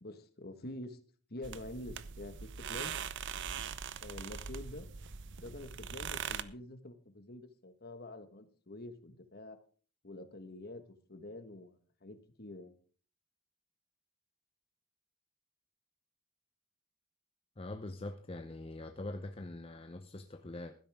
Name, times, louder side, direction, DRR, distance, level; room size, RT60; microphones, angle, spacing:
voice 1, 0.0-1.0 1.3-2.9 4.0-4.9 5.4-9.6 10.0-10.8 11.1-12.7, left 1 dB, 45° left, 1.5 m, -47 dB
sound 1, 1.4-6.4, right 7 dB, 55° right, 0.7 m, -41 dB
voice 2, 17.6-20.8, left 2 dB, 25° left, 0.6 m, -43 dB
15.5 x 12.5 x 3.6 m
head